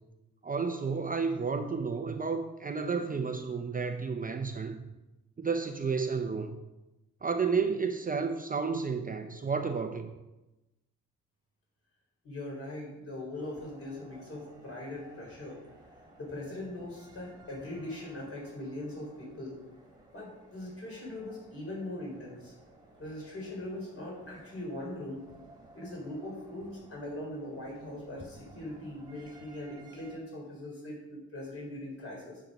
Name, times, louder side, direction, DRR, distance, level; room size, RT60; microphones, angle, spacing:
voice 1, 0.4-4.8 5.4-6.6 7.2-10.1, right 5 dB, 30° right, 6 dB, 0.5 m, -31 dB
voice 2, 12.2-15.6 16.2-19.6 20.1-22.5 23.0-25.3 25.7-32.4, left 1 dB, 50° left, -2 dB, 3.7 m, -41 dB
sound 1, 13.3-30.2, right 2 dB, 15° right, 1.6 m, -56 dB
9.3 x 7.4 x 5.2 m, 1.0 s
wide cardioid pair, 170°, 30 cm